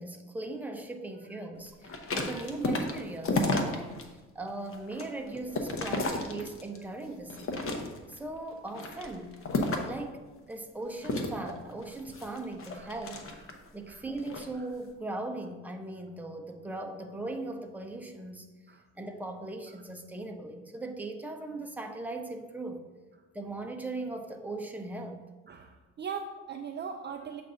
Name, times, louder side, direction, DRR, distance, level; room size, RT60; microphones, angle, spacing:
voice 1, 0.0-4.0 4.3-7.5 8.1-9.4 9.8-13.3 13.7-18.5 19.0-22.8 23.3-25.3, right 2 dB, 5° right, 3 dB, 0.7 m, -39 dB
sound 1, 1.8-4.0 4.5-6.8 7.3-8.2 8.7-10.0 11.0-13.7 14.2-14.5, left 2 dB, 45° left, 0.9 m, -32 dB
voice 2, 25.5-27.4, right 6 dB, 35° right, 4 dB, 0.4 m, -40 dB
7.6 x 2.6 x 5.6 m, 1.2 s
cardioid pair, 90°, 30 cm